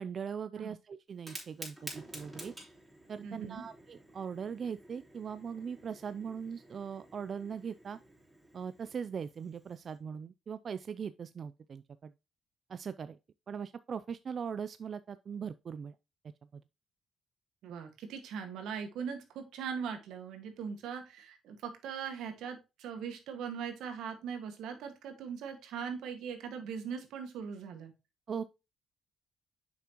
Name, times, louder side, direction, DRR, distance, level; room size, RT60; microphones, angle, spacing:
voice 1, 0.0-2.5 3.1-8.0 8.5-12.1 12.7-13.2 13.5-15.9 16.5-16.6 28.3-28.4, right 7 dB, 50° right, 0.4 m, -40 dB
Fire, 1.1-10.0, right 1 dB, 15° right, 4.0 m, -51 dB
voice 2, 3.2-3.6 17.6-27.9, right 7 dB, 85° right, 1.6 m, -40 dB
7.2 x 6.0 x 2.9 m
cardioid pair, 90°, 0 cm